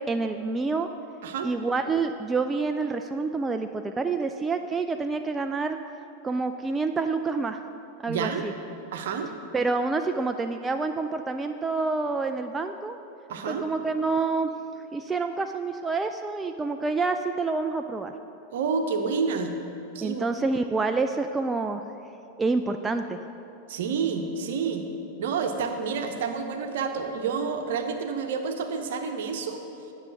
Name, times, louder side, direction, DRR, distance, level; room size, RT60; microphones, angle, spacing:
voice 1, 0.1-0.9 1.4-5.8 6.2-7.6 8.0-8.5 9.5-13.0 13.5-14.5 14.9-18.1 20.0-21.8 22.4-23.2, right 3 dB, 15° right, 6 dB, 0.3 m, -27 dB
voice 2, 8.1-8.5 8.9-9.3 13.3-13.7 18.5-19.5 19.9-20.3 23.7-24.9 25.2-29.6, right 5 dB, 55° right, 5 dB, 0.8 m, -29 dB
9.6 x 5.8 x 6.4 m, 2.8 s
figure-of-eight pair, 90°, 0 cm